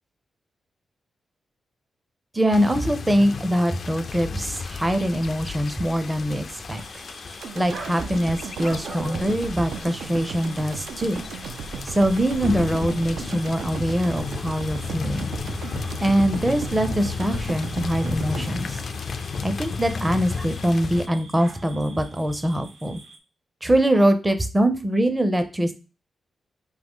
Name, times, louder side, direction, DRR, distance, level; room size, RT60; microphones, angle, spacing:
voice 1, 2.3-6.8 7.5-11.2 11.8-15.3 16.0-18.8 19.4-23.0 23.6-25.7, equal, 15° right, 9 dB, 0.5 m, -23 dB
sound 1, 2.5-21.1, left 5 dB, 50° left, 0.3 m, -33 dB
sound 2, 6.7-23.2, right 3 dB, 60° right, 0.7 m, -45 dB
sound 3, 7.4-19.6 20.0-20.1, right 6 dB, 90° right, 0.4 m, -36 dB
5.1 x 2.8 x 3.5 m, 0.31 s
wide cardioid pair, 125°, 0 cm